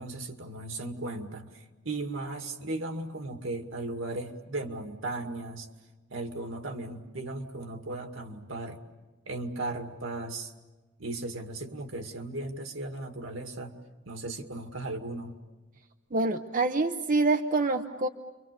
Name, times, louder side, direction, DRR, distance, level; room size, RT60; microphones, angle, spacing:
voice 1, 0.0-5.7 6.1-8.8 9.3-10.5 11.0-13.8 14.1-15.4, right 2 dB, 75° right, 5 dB, 2.2 m, -36 dB
voice 2, 16.1-18.1, right 3 dB, 40° right, 5 dB, 0.8 m, -26 dB
30.0 x 24.5 x 6.8 m, 1.2 s
head